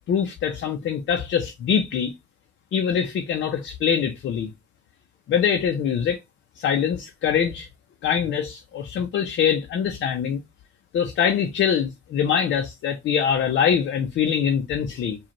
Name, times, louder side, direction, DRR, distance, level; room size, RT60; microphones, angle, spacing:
voice 1, 0.1-2.1 2.7-4.5 5.3-6.2 6.6-7.7 8.0-10.4 10.9-15.2, left 8 dB, 70° left, 0.7 m, -23 dB
4.9 x 2.4 x 3.0 m
cardioid pair, 90°, 20 cm